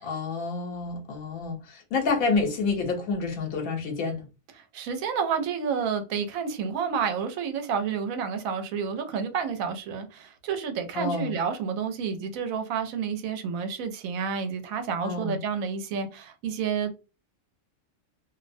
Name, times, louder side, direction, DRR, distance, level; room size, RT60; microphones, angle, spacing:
voice 1, 0.0-4.2 10.9-11.4 15.0-15.4, left 4 dB, 85° left, 1.0 m, -28 dB
voice 2, 4.6-16.9, right 6 dB, 80° right, 1.0 m, -30 dB
2.5 x 2.0 x 2.5 m
omnidirectional pair, 1.4 m